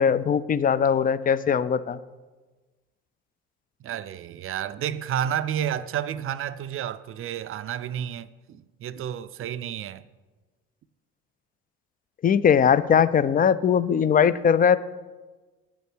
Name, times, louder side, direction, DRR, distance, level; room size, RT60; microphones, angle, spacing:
voice 1, 0.0-2.0 12.2-14.8, left 7 dB, 30° left, 0.4 m, -20 dB
voice 2, 3.8-10.1, right 10 dB, 45° right, 0.5 m, -31 dB
7.7 x 7.0 x 4.5 m
hypercardioid pair, 55°, 31 cm